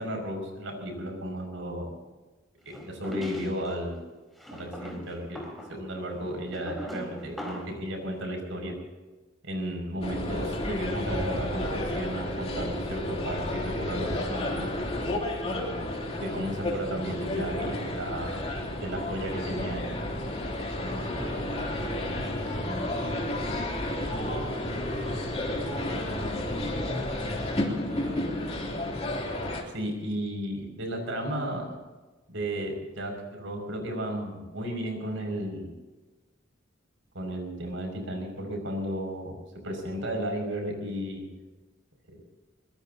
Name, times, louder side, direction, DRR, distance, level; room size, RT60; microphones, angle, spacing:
voice 1, 0.0-1.9 2.7-4.0 4.5-8.8 9.4-14.7 15.4-18.4 18.8-19.9 29.7-31.8 32.3-35.7 37.1-39.3 39.6-41.3, equal, 75° right, 3 dB, 6.1 m, -34 dB
sound 1, 2.7-3.7 4.4-7.8, equal, ahead, 4.3 m, -40 dB
sound 2, 10.0-29.6, left 1 dB, 30° left, 3.2 m, -31 dB
voice 2, 21.1-26.5 27.3-28.5, right 1 dB, 25° right, 0 dB, 3.9 m, -45 dB
23.5 x 20.5 x 2.9 m, 1.2 s
head